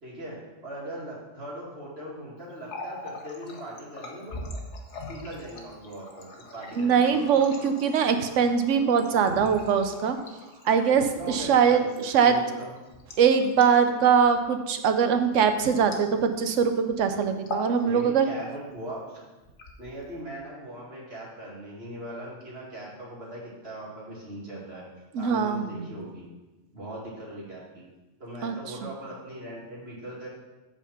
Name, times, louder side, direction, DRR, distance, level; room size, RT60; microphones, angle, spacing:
voice 1, 0.0-4.4 5.1-7.3 8.0-8.2 11.1-11.9 12.2-12.7 17.8-19.2 19.8-24.9 25.2-26.3 26.7-27.9 28.2-30.3, right 1 dB, 55° right, -6 dB, 2.6 m, -40 dB
Water tap faucet, 2.5-16.5 16.8-17.0 17.4-17.8 18.1-18.8 19.4-20.2, left 2 dB, 65° left, 1.4 m, -42 dB
voice 2, 6.8-10.2 10.6-12.4 13.2-18.3 25.1-25.9 28.4-28.6, right 7 dB, 80° right, 7 dB, 1.1 m, -22 dB
8.1 x 4.5 x 5.6 m, 1.1 s
omnidirectional pair, 1.3 m